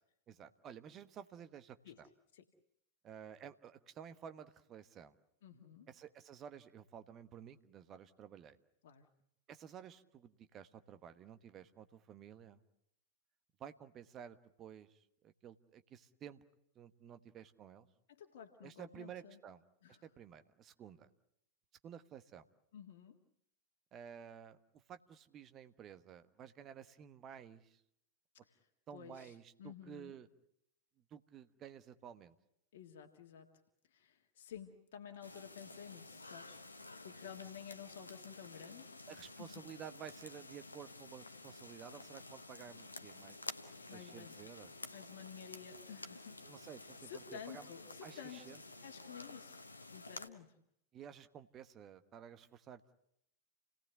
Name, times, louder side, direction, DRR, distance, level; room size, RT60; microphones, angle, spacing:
voice 1, 0.3-2.1 3.0-5.2 5.9-8.6 9.5-12.6 13.6-16.4 16.7-17.9 18.6-19.6 20.0-21.1 21.8-22.5 23.9-27.8 28.9-30.3 31.1-32.3 39.1-43.6 43.9-44.7 46.4-47.7 48.0-48.6 50.9-53.0, right 8 dB, 30° right, 10 dB, 1.3 m, -53 dB
voice 2, 5.4-5.9 8.8-9.1 18.1-19.4 19.8-20.0 22.7-23.2 28.5-28.6 28.9-30.1 32.7-33.5 33.9-36.6 37.0-39.5 43.9-44.4 44.9-46.4 46.8-49.6 49.9-50.5, left 8 dB, 55° left, 3 dB, 1.8 m, -52 dB
sound 1, 35.2-50.3, left 2 dB, 80° left, 1.1 m, -52 dB
sound 2, 43.3-49.3, right 1 dB, 80° right, 5.8 m, -66 dB
29.5 x 18.0 x 8.2 m, 0.77 s
figure-of-eight pair, 90°, 0 cm